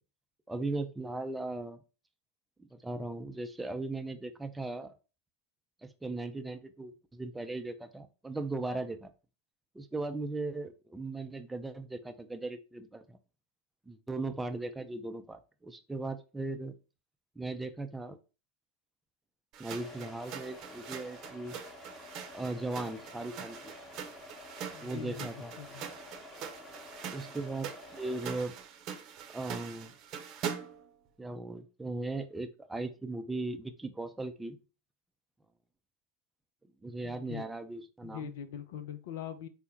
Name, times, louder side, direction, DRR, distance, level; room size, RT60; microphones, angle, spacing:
voice 1, 0.5-1.8 2.6-4.9 5.8-9.1 9.7-13.2 13.9-16.7 17.4-18.2 19.6-21.6 22.3-23.7 24.8-25.5 27.1-28.5 29.3-29.9 31.2-34.6 36.8-38.3, right 2 dB, 10° right, 7 dB, 0.5 m, -38 dB
sound 1, 19.5-30.9, right 8 dB, 45° right, 0.7 m, -43 dB
sound 2, 19.8-28.4, left 2 dB, 15° left, 0.9 m, -50 dB
voice 2, 24.7-25.8 37.0-37.5 38.0-39.5, left 9 dB, 60° left, 11 dB, 0.4 m, -42 dB
4.3 x 2.1 x 4.2 m, 0.33 s
figure-of-eight pair, 85°, 0 cm